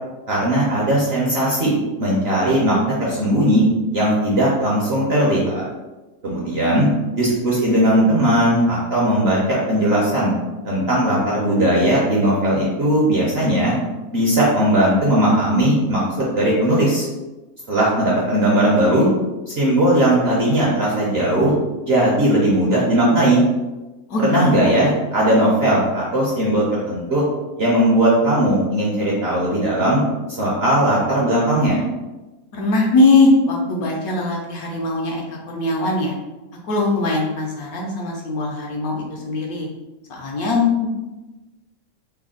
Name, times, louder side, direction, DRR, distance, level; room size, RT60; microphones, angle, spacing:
voice 1, 0.3-1.7 2.0-3.7 3.9-5.6 6.2-6.9 7.2-10.3 10.6-13.7 14.1-17.1 17.7-19.1 19.5-21.5 21.8-23.4 24.2-27.2 27.6-30.0 30.4-31.8, right 1 dB, 55° right, -5 dB, 0.8 m, -18 dB
voice 2, 32.5-36.2 36.7-39.7 40.1-40.9, left 3 dB, 70° left, -1 dB, 1.0 m, -20 dB
3.3 x 2.2 x 3.6 m, 1.1 s
omnidirectional pair, 1.8 m